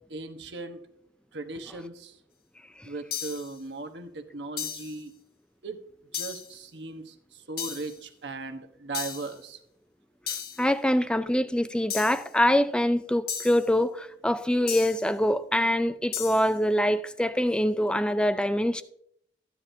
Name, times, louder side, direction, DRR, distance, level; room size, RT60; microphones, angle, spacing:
voice 1, 0.1-0.8 1.3-2.2 2.8-5.1 5.6-5.8 6.1-9.6, right 3 dB, 80° right, 1.1 m, -38 dB
sound 1, 3.1-3.5 4.6-5.0 6.1-6.5 7.6-8.0 8.9-9.3 10.3-10.7 11.9-12.3 13.3-13.7 14.7-15.1 16.1-16.5, left 8 dB, 55° left, 1.1 m, -35 dB
voice 2, 10.6-18.8, equal, 5° left, 0.4 m, -24 dB
14.0 x 9.7 x 2.7 m
head